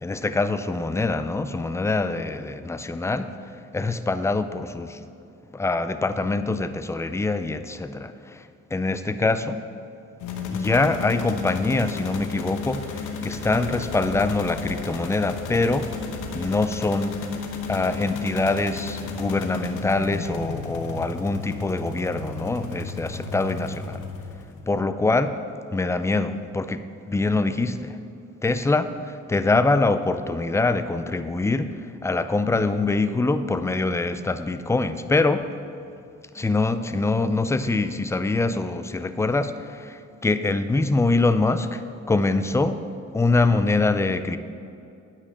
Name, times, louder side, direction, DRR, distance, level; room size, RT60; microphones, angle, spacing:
voice 1, 0.0-3.3 3.7-5.0 5.5-9.6 10.5-15.9 16.3-17.2 17.7-24.1 24.7-25.3 25.7-28.0 28.4-35.5 36.3-42.8 43.1-44.4, left 3 dB, 10° left, 11 dB, 0.4 m, -24 dB
sound 1, 10.2-24.7, left 4 dB, 85° left, 1.0 m, -33 dB
9.7 x 5.8 x 6.1 m, 2.5 s
cardioid pair, 90°, 30 cm